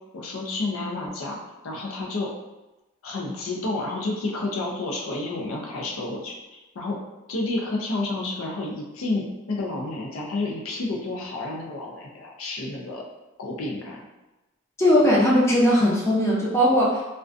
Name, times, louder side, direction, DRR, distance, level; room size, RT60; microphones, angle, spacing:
voice 1, 0.1-1.4 1.6-2.3 3.0-7.0 7.3-13.0 13.4-14.0, left 2 dB, 85° left, 0 dB, 0.5 m, -30 dB
voice 2, 14.8-17.0, equal, 15° left, -6 dB, 0.5 m, -19 dB
2.4 x 2.2 x 2.4 m, 1.0 s
head